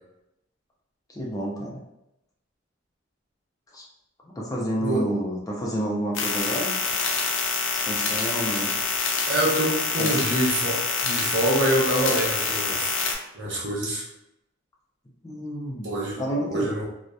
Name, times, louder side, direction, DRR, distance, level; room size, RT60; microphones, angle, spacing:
voice 1, 1.1-1.8 3.7-3.8 4.2-6.7 7.7-8.7 10.0-10.2 15.2-15.9 16.2-16.7, right 1 dB, 20° left, -3 dB, 0.4 m, -29 dB
sound 1, 6.1-13.1, left 4 dB, 75° left, 0.4 m, -26 dB
voice 2, 9.3-13.0 13.3-14.0 15.8-16.2 16.5-16.8, right 1 dB, 60° right, -4 dB, 0.8 m, -25 dB
2.7 x 2.0 x 2.3 m, 0.87 s
head